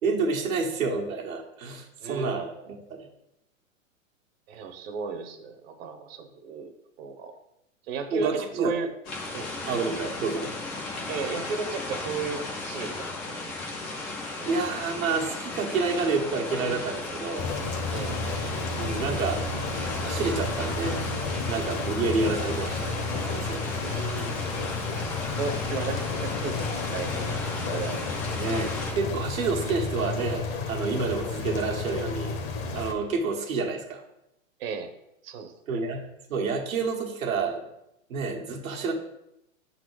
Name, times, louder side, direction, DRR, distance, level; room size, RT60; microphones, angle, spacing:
voice 1, 0.0-3.1 8.1-8.7 9.7-10.5 14.4-17.5 18.8-19.5 20.0-21.0 21.5-23.0 23.3-23.7 28.3-32.4 32.7-34.0 35.7-37.6 38.1-38.9, right 4 dB, 85° right, 1 dB, 1.5 m, -29 dB
voice 2, 2.0-2.4 4.5-6.7 7.0-7.3 7.9-8.9 9.3-9.5 11.1-13.4 14.4-14.6 17.9-18.2 23.8-24.3 25.4-27.4 27.7-28.2 34.6-34.9 35.2-35.5, right 5 dB, 45° right, 7 dB, 0.9 m, -34 dB
sound 1, 9.0-28.9, left 2 dB, 10° left, 0.3 m, -35 dB
sound 2, 17.4-32.9, left 3 dB, 30° left, 0.7 m, -32 dB
5.7 x 4.0 x 4.7 m, 0.83 s
hypercardioid pair, 140°, 40 cm